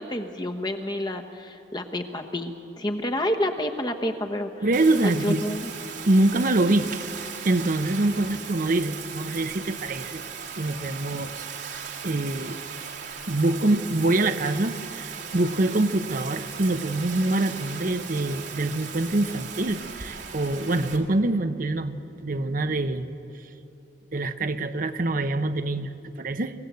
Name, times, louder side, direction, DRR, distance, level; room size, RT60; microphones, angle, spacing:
voice 1, 0.0-4.7 5.0-5.7, left 1 dB, 25° left, 5 dB, 1.1 m, -29 dB
voice 2, 4.6-5.4 6.1-7.1 7.4-10.2 10.6-11.5 12.0-12.6 13.3-22.0 22.2-23.1 24.1-25.9 26.1-26.5, right 2 dB, 50° right, 9 dB, 0.8 m, -25 dB
Bathtub (filling or washing), 4.7-21.0, right 7 dB, 75° right, 2.2 m, -38 dB
24.0 x 15.5 x 8.2 m, 2.9 s
head